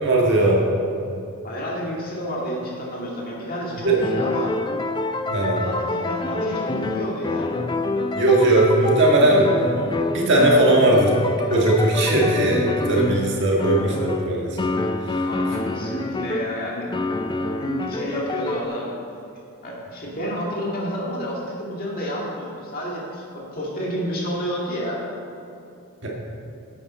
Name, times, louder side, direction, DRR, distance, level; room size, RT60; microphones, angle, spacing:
voice 1, 0.0-0.6 3.8-4.0 5.3-5.6 8.2-9.5 10.1-11.1 11.5-14.8 15.1-15.2 26.0-26.1, right 2 dB, 55° right, -3 dB, 1.7 m, -18 dB
voice 2, 1.4-4.6 5.2-7.6 15.2-16.9 17.6-19.0 19.6-25.0, equal, 40° left, -4 dB, 2.0 m, -30 dB
sound 1, 3.4-16.6 16.9-18.7, left 3 dB, 20° left, 0.3 m, -27 dB
10.5 x 8.4 x 4.2 m, 2.6 s
head